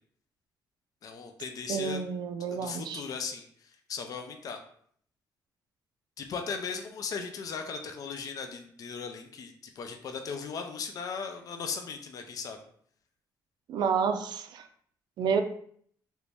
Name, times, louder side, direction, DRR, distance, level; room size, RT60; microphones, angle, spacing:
voice 1, 1.0-2.0 2.5-4.6 6.2-12.6, left 5 dB, 50° left, 5 dB, 0.4 m, -37 dB
voice 2, 1.7-3.0 13.7-14.7 15.2-15.4, right 6 dB, 65° right, 7 dB, 0.4 m, -29 dB
3.0 x 2.6 x 3.4 m, 0.62 s
cardioid pair, 135°, 8 cm